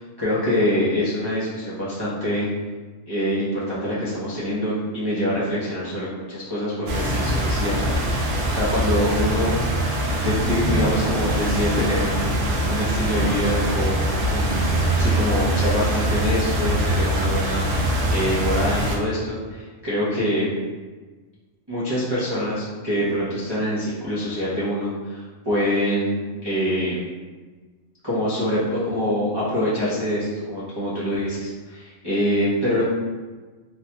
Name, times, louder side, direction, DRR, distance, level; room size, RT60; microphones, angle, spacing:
voice 1, 0.0-2.5 3.1-9.5 10.2-14.0 14.3-17.7 18.1-20.5 21.7-27.0 28.0-32.8, equal, 40° right, -10 dB, 0.3 m, -25 dB
sound 1, 6.9-19.0, right 1 dB, 70° right, 0.8 m, -23 dB
3.0 x 2.2 x 2.8 m, 1.3 s
omnidirectional pair, 1.4 m